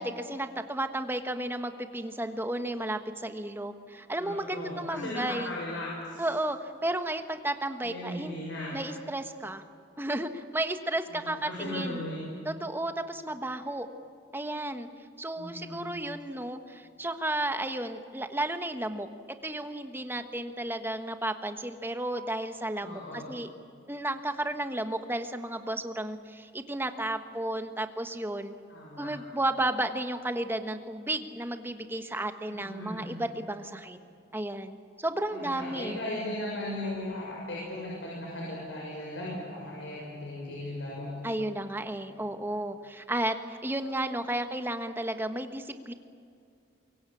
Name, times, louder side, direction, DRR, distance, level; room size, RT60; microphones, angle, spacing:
voice 1, 0.0-5.5 6.2-8.4 8.7-9.6 10.0-12.0 12.4-13.9 14.3-14.9 15.2-19.1 19.4-23.5 23.9-28.5 29.0-34.0 34.3-36.0 41.2-45.9, right 1 dB, 10° right, 7 dB, 1.4 m, -33 dB
voice 2, 4.2-6.3 7.8-8.8 11.1-12.3 15.3-15.9 22.8-23.3 28.7-29.2 32.5-33.2 35.3-41.1 42.1-42.5, left 1 dB, 90° left, -4 dB, 6.7 m, -37 dB
24.5 x 23.0 x 8.6 m, 2.4 s
head